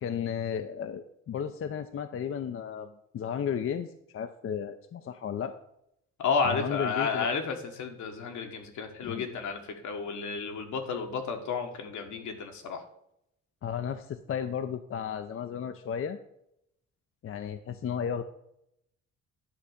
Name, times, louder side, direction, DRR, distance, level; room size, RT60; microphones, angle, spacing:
voice 1, 0.0-5.6 6.5-7.3 9.0-9.3 13.6-16.2 17.2-18.2, left 8 dB, 45° left, 8 dB, 0.6 m, -34 dB
voice 2, 6.2-12.8, left 5 dB, 75° left, 4 dB, 1.5 m, -32 dB
10.0 x 3.4 x 6.5 m, 0.77 s
cardioid pair, 90°, 30 cm